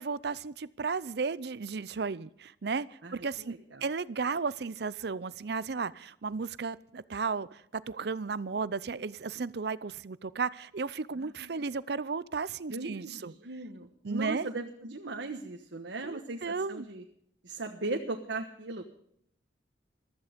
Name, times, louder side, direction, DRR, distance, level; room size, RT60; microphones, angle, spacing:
voice 1, 0.0-13.3 14.0-14.5 16.0-16.9, right 4 dB, 60° right, 18 dB, 0.6 m, -34 dB
voice 2, 3.0-3.9 11.2-11.5 12.7-17.0 17.4-18.9, right 2 dB, 80° right, 3 dB, 1.3 m, -38 dB
15.0 x 13.5 x 5.2 m, 0.69 s
head